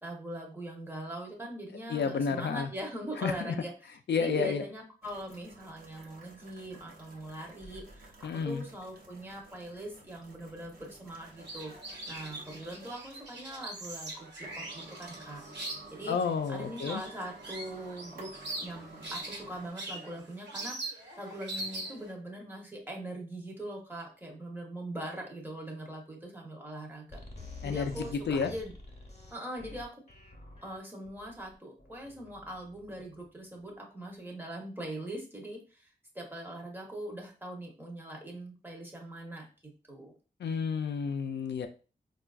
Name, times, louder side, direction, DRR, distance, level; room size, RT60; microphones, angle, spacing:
voice 1, 0.0-11.7 12.1-14.3 14.5-16.2 16.5-18.3 18.6-27.2 27.6-28.7 29.3-30.0 30.6-35.9 36.1-39.5 39.9-40.1, right 1 dB, 10° right, 0 dB, 0.9 m, -41 dB
voice 2, 1.9-2.7 3.2-3.5 4.1-4.6 8.2-8.6 16.1-17.0 27.6-28.5 40.4-41.7, left 5 dB, 75° left, 7 dB, 0.4 m, -31 dB
sound 1, 5.0-19.7, right 2 dB, 55° right, 0.9 m, -53 dB
sound 2, 11.2-22.1, right 2 dB, 80° right, 1.1 m, -42 dB
sound 3, 27.1-33.5, left 2 dB, 35° left, 1.0 m, -48 dB
4.4 x 2.4 x 2.3 m, 0.35 s
wide cardioid pair, 105°, 18 cm